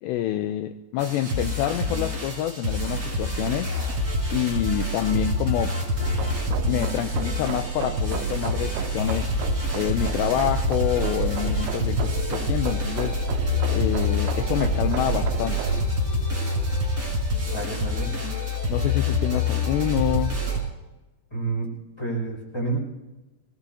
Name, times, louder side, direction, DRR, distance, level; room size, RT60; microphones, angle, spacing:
voice 1, 0.0-3.7 4.3-5.8 6.7-9.3 9.7-13.2 13.7-15.6 18.7-20.3, left 11 dB, 85° left, 8 dB, 2.5 m, -27 dB
sound 1, 1.0-20.6, left 2 dB, 20° right, 5.8 m, -27 dB
sound 2, 6.0-15.8, right 6 dB, 90° right, 3.4 m, -32 dB
voice 2, 17.4-18.2 21.3-21.7 22.0-22.8, right 3 dB, 5° left, -2 dB, 5.3 m, -29 dB
23.0 x 20.0 x 2.8 m, 1.1 s
omnidirectional pair, 5.6 m